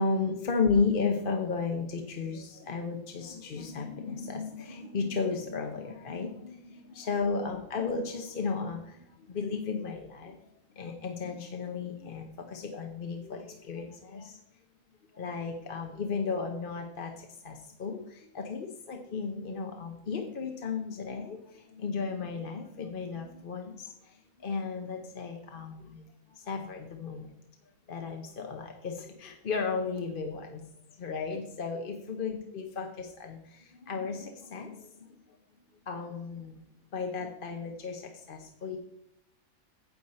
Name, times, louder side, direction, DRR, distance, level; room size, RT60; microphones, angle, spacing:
voice 1, 0.0-14.4 15.1-26.0 26.3-27.3 27.9-30.6 31.0-35.1 35.9-36.6 36.9-38.8, left 4 dB, 45° left, 3 dB, 0.9 m, -34 dB
9.4 x 8.0 x 4.2 m, 0.82 s
omnidirectional pair, 1.4 m